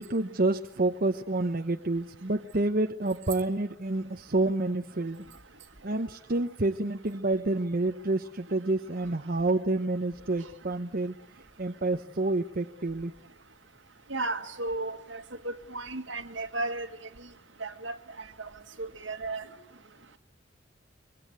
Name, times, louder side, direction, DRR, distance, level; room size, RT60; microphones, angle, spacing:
voice 1, 0.0-5.3 5.8-11.2 11.6-13.1, right 2 dB, 50° right, 1.0 m, -28 dB
voice 2, 14.1-16.9 17.6-18.0 18.4-18.5 18.8-19.5, right 2 dB, 75° right, 1.9 m, -34 dB
25.0 x 23.5 x 8.1 m
head